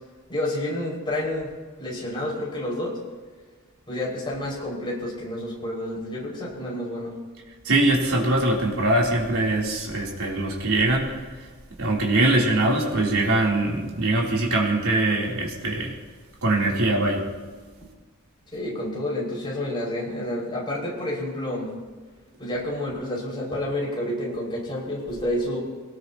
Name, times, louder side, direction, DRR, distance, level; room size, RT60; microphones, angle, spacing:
voice 1, 0.3-1.5 1.8-3.0 3.9-7.1 18.5-21.7 22.4-25.6, left 1 dB, 20° left, -4 dB, 6.0 m, -29 dB
voice 2, 7.6-11.2 11.8-15.9 16.4-17.2, right 2 dB, 70° right, -3 dB, 3.5 m, -22 dB
24.0 x 19.0 x 3.0 m, 1.4 s
head